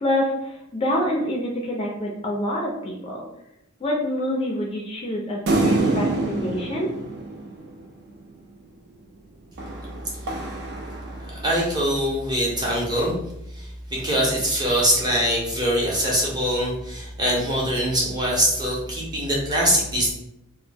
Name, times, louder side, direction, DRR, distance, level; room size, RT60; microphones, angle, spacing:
voice 1, 0.0-3.3 3.8-6.9, left 1 dB, 25° left, -1 dB, 0.4 m, -26 dB
sound 1, 5.5-8.1 9.6-11.7, right 2 dB, 55° right, 0.4 m, -26 dB
voice 2, 11.2-13.2 13.6-20.1, equal, 20° right, -4 dB, 0.7 m, -23 dB
2.0 x 2.0 x 3.3 m, 0.82 s
head